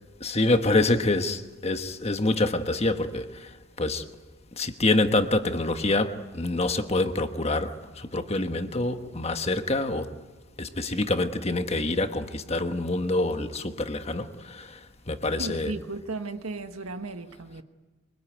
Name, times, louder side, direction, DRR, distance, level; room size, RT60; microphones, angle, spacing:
voice 1, 0.2-3.5 3.8-4.1 4.6-10.1 10.6-14.8 15.1-15.7, left 2 dB, 30° left, 1.3 m, -26 dB
voice 2, 15.4-17.6, right 3 dB, 90° right, 1.6 m, -35 dB
24.5 x 24.0 x 9.3 m
head